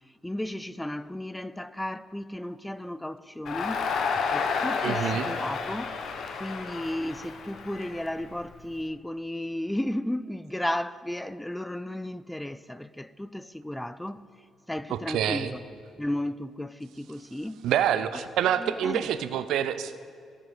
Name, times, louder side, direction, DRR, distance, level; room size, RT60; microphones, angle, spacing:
voice 1, 0.2-6.0 6.4-14.3 14.7-15.6 16.0-17.7 18.1-18.2 18.5-19.2, left 1 dB, 5° left, 0.3 m, -34 dB
Crowd, 3.4-8.6, left 5 dB, 65° left, 1.0 m, -31 dB
voice 2, 4.8-5.3 14.9-15.5 17.6-20.0, right 9 dB, 80° right, 0.5 m, -27 dB
15.0 x 7.5 x 5.2 m
cardioid pair, 90°, 0 cm